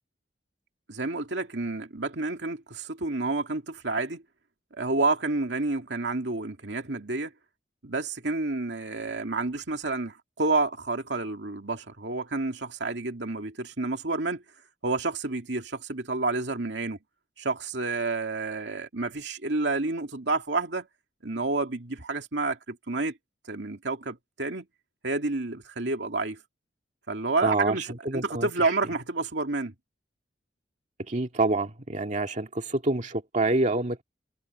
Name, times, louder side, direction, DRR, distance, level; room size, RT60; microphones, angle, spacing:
voice 1, 0.9-4.2 4.7-7.3 7.8-14.4 14.8-17.0 17.4-20.9 21.2-23.1 23.5-24.7 25.0-26.4 27.1-29.7, right 3 dB, 70° right, 2.6 m, -29 dB
voice 2, 27.4-27.8 28.1-28.5 31.1-34.0, right 2 dB, 45° right, 1.9 m, -26 dB
head